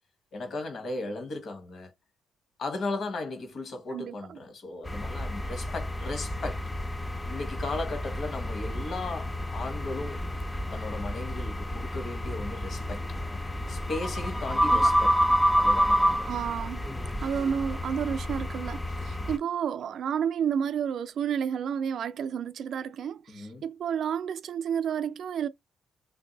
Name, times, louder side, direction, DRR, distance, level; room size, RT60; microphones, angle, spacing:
voice 1, 0.3-1.9 2.6-6.6 7.2-10.3 10.7-13.0 13.7-15.2 15.6-16.3 23.3-23.6, left 2 dB, 55° left, 1.1 m, -36 dB
voice 2, 3.9-4.4 14.6-14.9 16.3-16.8 17.2-25.5, right 8 dB, 65° right, 0.3 m, -31 dB
sound 1, 4.9-19.4, equal, 15° left, 0.4 m, -29 dB
2.6 x 2.6 x 3.9 m
cardioid pair, 90°, 0 cm